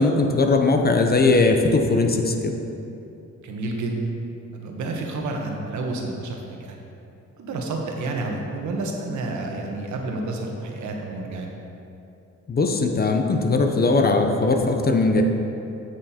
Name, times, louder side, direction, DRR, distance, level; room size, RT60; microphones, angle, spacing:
voice 1, 0.0-2.6 12.5-15.2, left 3 dB, 30° left, 4 dB, 0.8 m, -19 dB
voice 2, 3.4-4.2 4.5-6.8 7.4-11.5, right 2 dB, 70° right, 1 dB, 1.3 m, -30 dB
9.1 x 6.3 x 4.3 m, 2.8 s
cardioid pair, 90°, 30 cm